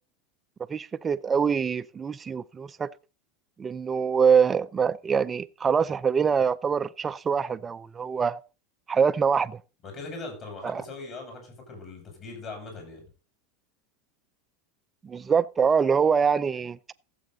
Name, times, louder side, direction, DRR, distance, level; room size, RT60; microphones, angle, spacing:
voice 1, 0.7-2.9 3.6-8.4 8.9-9.6 10.6-10.8 15.0-16.8, right 6 dB, 20° right, 0.5 m, -24 dB
voice 2, 9.8-13.0, left 3 dB, 35° left, 7.1 m, -40 dB
15.0 x 7.8 x 4.0 m
supercardioid pair, 135°, 0 cm